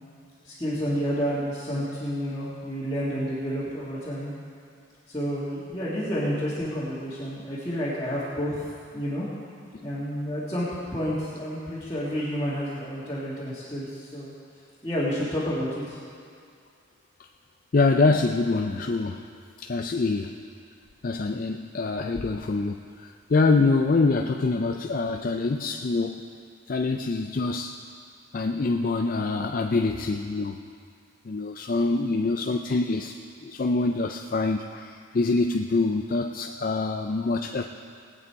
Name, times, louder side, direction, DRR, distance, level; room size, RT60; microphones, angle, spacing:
voice 1, 0.4-4.3 5.1-8.7 8.9-9.3 9.8-10.7 10.9-14.3 14.8-16.0, equal, 20° left, -11 dB, 1.9 m, -30 dB
voice 2, 17.7-19.3 19.6-20.3 21.0-26.2 26.7-27.8 28.3-30.6 31.2-37.6, left 3 dB, 40° left, 4 dB, 0.4 m, -25 dB
20.0 x 8.3 x 4.7 m, 2.2 s
head